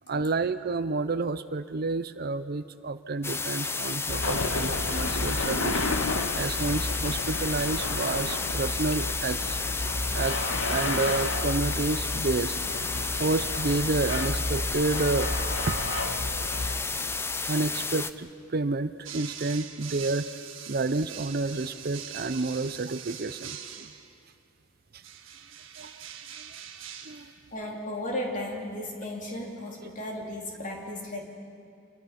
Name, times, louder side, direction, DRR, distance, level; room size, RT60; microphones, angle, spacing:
voice 1, 0.1-5.8 6.3-9.6 10.1-10.4 10.6-15.3 15.7-15.8 17.5-20.3 20.7-23.9 25.8-25.9 26.4-26.5 27.1-27.3, right 3 dB, 50° right, 13 dB, 0.6 m, -30 dB
sound 1, 3.2-18.1, left 4 dB, 10° left, 0.5 m, -32 dB
sound 2, 4.1-16.8, left 2 dB, 70° left, 1.3 m, -31 dB
sound 3, 19.0-24.2 25.0-27.4, right 9 dB, 65° right, 1.5 m, -42 dB
voice 2, 27.5-31.2, left 1 dB, 40° left, 0 dB, 3.2 m, -35 dB
28.0 x 22.0 x 5.9 m, 2.3 s
head